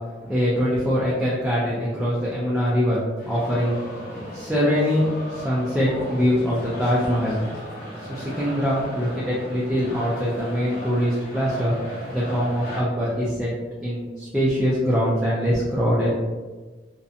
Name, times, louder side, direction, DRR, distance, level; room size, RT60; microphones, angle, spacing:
voice 1, 0.2-3.8 4.3-7.5 8.1-11.8 12.1-13.5 13.8-16.1, equal, 5° right, -8 dB, 0.4 m, -23 dB
sound 1, 3.2-12.8, equal, 65° left, 0.8 m, -36 dB
2.7 x 2.1 x 2.5 m, 1.3 s
head